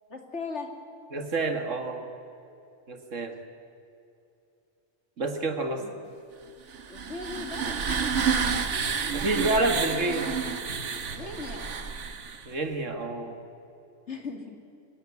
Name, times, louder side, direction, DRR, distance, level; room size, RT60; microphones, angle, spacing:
voice 1, 0.1-0.7 5.8-6.0 6.9-7.8 11.1-11.7 14.1-14.6, left 4 dB, 65° left, 4 dB, 2.7 m, -38 dB
voice 2, 1.1-2.1 2.9-3.3 5.2-5.8 9.1-10.3 12.5-13.4, right 2 dB, 90° right, 6 dB, 2.3 m, -28 dB
sound 1, 6.7-12.5, right 6 dB, 70° right, 1.6 m, -30 dB
24.5 x 17.0 x 9.5 m, 2.7 s
omnidirectional pair, 1.3 m